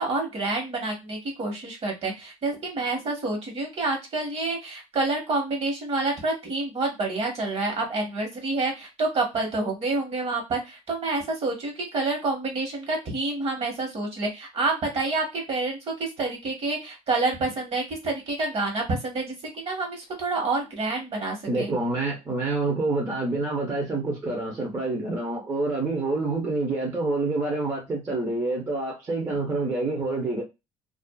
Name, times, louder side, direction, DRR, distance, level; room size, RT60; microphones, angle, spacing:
voice 1, 0.0-21.7, right 3 dB, 45° right, 1.3 m, -28 dB
voice 2, 21.5-30.4, right 3 dB, 20° right, 0.8 m, -27 dB
2.5 x 2.4 x 2.3 m
cardioid pair, 110°, 14 cm